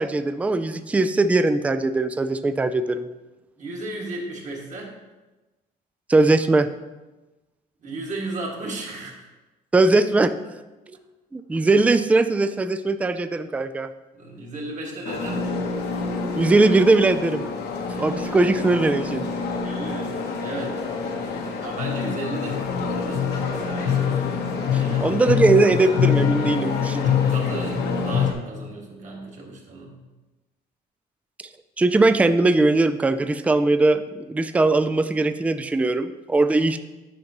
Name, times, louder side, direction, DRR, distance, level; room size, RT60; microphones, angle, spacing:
voice 1, 0.0-3.1 6.1-6.7 9.7-10.3 11.3-13.9 16.4-17.4 18.0-19.3 24.7-26.9 31.8-36.8, right 2 dB, 10° right, 11 dB, 0.3 m, -20 dB
voice 2, 3.6-4.9 7.8-9.2 14.1-15.7 19.6-20.8 21.1-24.0 24.8-25.4 26.8-30.0, right 2 dB, 45° right, -2 dB, 2.0 m, -35 dB
sound 1, 15.0-28.3, left 6 dB, 75° left, 1.0 m, -25 dB
9.3 x 5.2 x 3.0 m, 1.1 s
cardioid pair, 110°, 17 cm